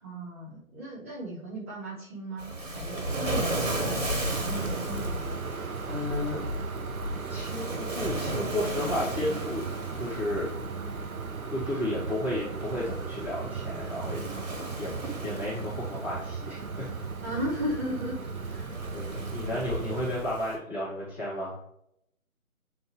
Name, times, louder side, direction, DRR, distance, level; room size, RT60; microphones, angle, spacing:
voice 1, 0.0-5.2 17.2-18.2 18.5-18.7, equal, 10° right, -7 dB, 0.8 m, -36 dB
Waves surf, 2.4-20.6, right 1 dB, 65° right, 1.6 m, -36 dB
sound 1, 4.3-20.2, right 5 dB, 90° right, 0.7 m, -37 dB
voice 2, 5.9-6.4 7.3-10.5 11.5-14.2 14.8-14.9 15.2-16.9 18.9-21.6, left 1 dB, 20° left, -12 dB, 2.2 m, -33 dB
8.5 x 4.2 x 3.2 m, 0.76 s
figure-of-eight pair, 150°, 41 cm